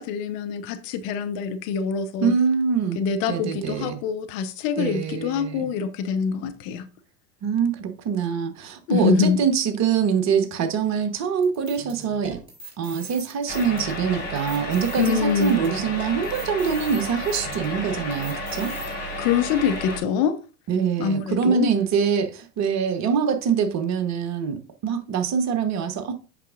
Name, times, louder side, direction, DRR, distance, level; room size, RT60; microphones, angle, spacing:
voice 1, 0.0-2.3 3.0-6.9 8.9-9.4 15.0-15.6 18.7-18.9 19.2-20.4 21.0-21.7, left 6 dB, 40° left, 0.8 m, -25 dB
voice 2, 2.2-3.0 3.3-4.0 4.8-5.7 7.4-12.4 12.8-18.7 20.7-26.1, right 6 dB, 35° right, 1.1 m, -24 dB
sound 1, 11.4-18.9, right 2 dB, 10° right, 3.3 m, -41 dB
sound 2, 13.5-20.0, left 1 dB, 20° left, 3.7 m, -32 dB
8.1 x 5.9 x 2.5 m
figure-of-eight pair, 80°, 49 cm